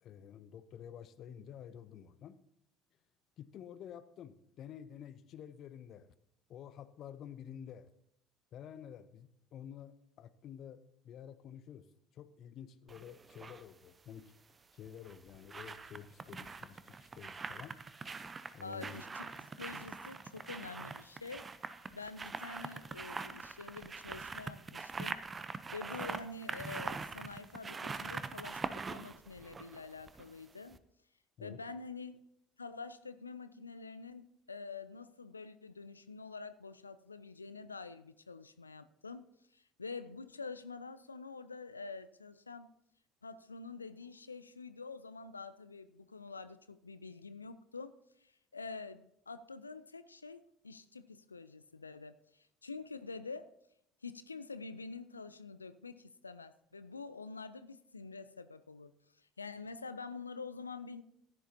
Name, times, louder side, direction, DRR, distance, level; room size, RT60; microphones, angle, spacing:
voice 1, 0.0-2.4 3.4-6.1 6.5-7.9 8.5-11.9 12.1-14.3 14.7-17.8 18.5-19.0 31.4-31.6, left 9 dB, 50° left, 15 dB, 0.6 m, -50 dB
sound 1, 12.9-13.6 14.9-30.4 30.7-30.8, right 4 dB, 25° right, 0.6 m, -43 dB
voice 2, 18.6-19.3 19.6-21.6 21.9-25.2 25.7-30.8 31.4-32.1 32.6-39.3 39.5-42.7 43.2-53.5 54.0-61.0, left 4 dB, 90° left, 13 dB, 0.3 m, -47 dB
15.0 x 10.0 x 2.8 m, 0.74 s
figure-of-eight pair, 60°, 0 cm